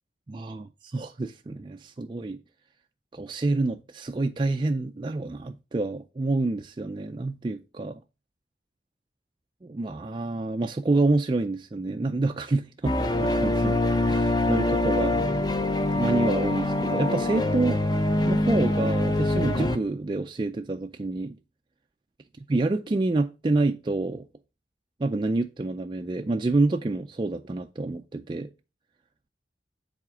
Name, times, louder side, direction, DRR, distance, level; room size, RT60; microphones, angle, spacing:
voice 1, 0.3-2.4 3.1-8.0 9.6-13.8 14.1-15.2 15.9-17.8 18.2-21.4 22.5-24.3 25.0-28.5, right 2 dB, 25° right, 0.4 m, -27 dB
sound 1, 12.8-19.8, left 1 dB, 25° left, 0.7 m, -24 dB
7.3 x 4.2 x 4.9 m
head